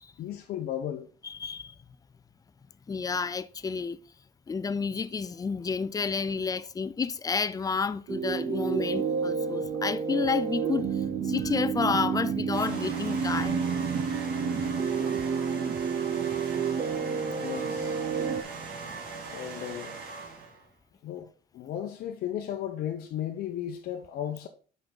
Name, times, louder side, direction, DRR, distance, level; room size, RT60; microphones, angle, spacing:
voice 1, 0.2-1.1 17.3-18.0 19.3-20.0 21.0-21.3 21.5-24.5, left 10 dB, 65° left, 0.7 m, -35 dB
voice 2, 1.2-1.8 2.9-4.0 4.5-13.7, left 5 dB, 20° left, 0.4 m, -30 dB
sound 1, 8.1-18.4, right 6 dB, 45° right, 0.7 m, -29 dB
sound 2, 12.5-20.6, right 4 dB, 75° right, 2.3 m, -40 dB
5.7 x 5.3 x 3.7 m
cardioid pair, 110°, 17 cm